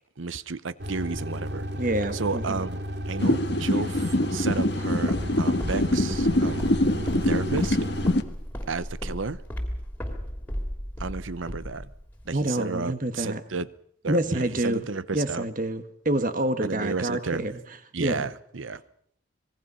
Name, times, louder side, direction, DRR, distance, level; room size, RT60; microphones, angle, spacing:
voice 1, 0.2-1.7 2.1-7.0 7.2-7.8 8.7-9.4 11.0-11.9 12.2-13.7 14.0-15.5 16.6-17.5 17.9-18.8, right 4 dB, 80° right, 0.8 m, -32 dB
sound 1, 0.8-8.1, equal, 55° right, 2.1 m, -33 dB
voice 2, 1.7-2.6 12.3-13.4 14.1-14.9 15.1-17.6 18.0-18.2, right 1 dB, 40° right, 1.5 m, -27 dB
sound 2, 3.2-8.2, left 1 dB, 55° left, 1.4 m, -24 dB
Walk footsteps, 4.5-12.4, equal, 10° left, 2.9 m, -36 dB
26.0 x 21.0 x 5.7 m
head